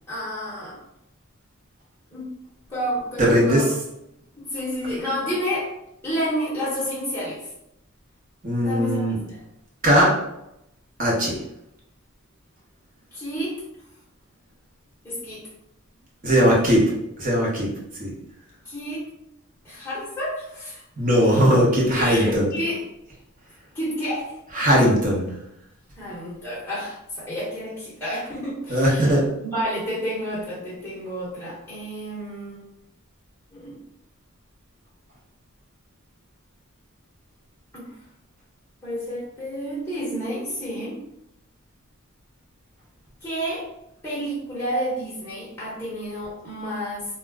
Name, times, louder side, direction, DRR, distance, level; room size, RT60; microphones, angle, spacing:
voice 1, 0.1-0.8 2.1-2.3 2.7-3.7 4.4-5.7 6.0-7.5 8.6-9.0 9.3-9.4 13.1-13.6 15.0-15.4 18.6-19.1 19.6-20.8 21.1-21.2 21.9-22.8 23.7-24.3 26.0-29.1 29.4-32.7 33.5-33.8 37.7-37.9 38.8-41.0 43.2-43.7 44.0-47.1, equal, 10° left, -8 dB, 0.9 m, -30 dB
voice 2, 3.2-3.8 8.4-9.2 9.8-10.1 11.0-11.4 16.2-16.8 17.2-17.7 18.0-18.1 21.0-22.7 24.5-25.3 28.7-29.2, equal, 40° right, -4 dB, 0.8 m, -19 dB
2.2 x 2.0 x 3.4 m, 0.82 s
head